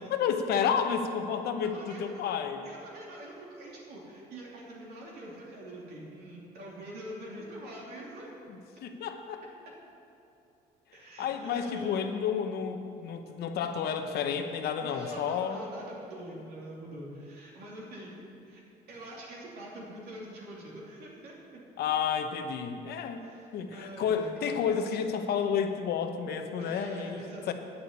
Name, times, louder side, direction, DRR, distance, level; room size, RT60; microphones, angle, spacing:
voice 1, 0.1-2.7 8.5-9.4 11.2-15.6 21.8-23.2 23.5-27.2 27.5-27.6, left 7 dB, 70° left, 7 dB, 1.0 m, -31 dB
voice 2, 1.7-2.1 2.6-8.3 10.9-12.0 14.8-18.2 18.4-18.6 18.9-21.6 23.2-24.6 26.6-27.5, right 1 dB, 70° right, -4 dB, 3.1 m, -44 dB
9.2 x 7.0 x 8.4 m, 2.7 s
cardioid pair, 110°, 17 cm